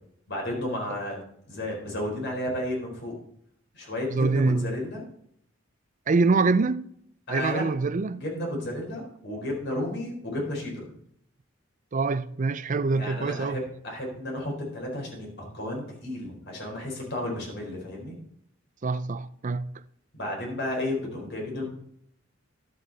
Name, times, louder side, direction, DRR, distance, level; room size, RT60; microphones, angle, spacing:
voice 1, 0.3-3.1 3.7-5.0 6.3-6.4 7.3-7.6 8.2-10.8 12.9-15.3 15.5-18.2 20.1-21.7, left 1 dB, 60° left, 4.3 m, -32 dB
voice 2, 4.1-4.7 6.1-6.9 7.3-8.2 11.9-13.6 18.8-19.7, right 3 dB, 40° right, 0.5 m, -25 dB
11.5 x 7.8 x 4.0 m
head